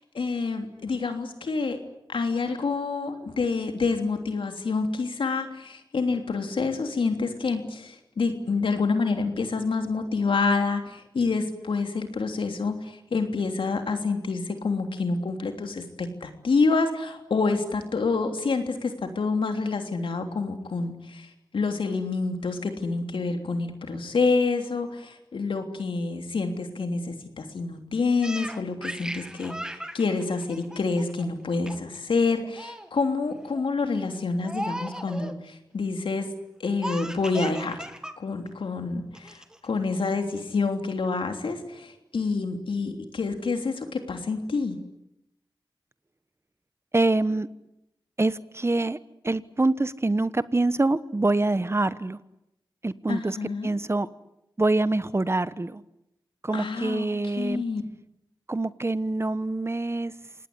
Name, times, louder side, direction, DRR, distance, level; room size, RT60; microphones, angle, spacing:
voice 1, 0.0-1.8 2.1-36.3 36.6-37.8 38.2-39.4 39.6-44.8 53.1-53.7 56.5-57.1 57.4-57.8, left 4 dB, 85° left, 5 dB, 3.3 m, -27 dB
Laughter, 28.2-31.3 31.7-32.0 32.3-32.9 33.4-33.7 34.4-35.4 36.8-38.2 38.5-38.6 39.1-39.7, right 1 dB, 10° right, 2.0 m, -37 dB
voice 2, 46.9-47.5 48.2-49.0 49.2-52.2 52.8-53.4 53.6-54.1 54.6-55.8 56.4-57.6 58.5-60.1, right 2 dB, 30° right, 15 dB, 1.2 m, -25 dB
27.0 x 19.0 x 9.8 m, 0.87 s
cardioid pair, 50°, 9 cm